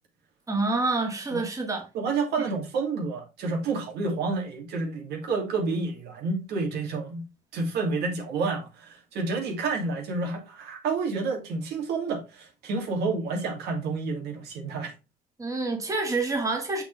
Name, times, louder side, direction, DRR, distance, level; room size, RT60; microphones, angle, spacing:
voice 1, 0.5-1.9 15.4-16.8, right 3 dB, 20° right, 2.1 m, -27 dB
voice 2, 1.9-7.2 7.5-14.9, right 4 dB, 75° right, 2.7 m, -29 dB
6.7 x 5.9 x 3.4 m
cardioid pair, 110°, 17 cm